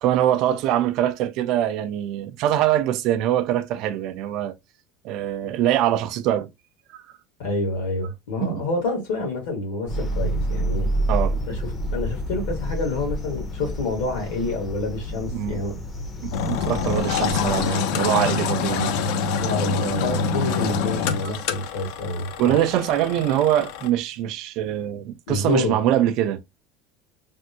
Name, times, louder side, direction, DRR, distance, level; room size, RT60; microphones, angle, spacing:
voice 1, 0.0-4.5 5.0-6.5 6.9-7.0 8.4-8.6 11.1-11.4 15.3-15.8 16.2-19.0 19.8-20.2 22.4-26.4, right 12 dB, 60° right, 0.4 m, -23 dB
voice 2, 7.4-10.9 11.5-11.6 11.9-15.7 19.4-22.6 25.3-25.7, left 2 dB, 85° left, 1.7 m, -28 dB
sound 1, 9.9-17.7, right 1 dB, 25° left, 0.6 m, -29 dB
Engine, 16.3-23.9, left 5 dB, 70° left, 0.5 m, -26 dB
3.4 x 2.2 x 2.8 m
supercardioid pair, 120°, 0 cm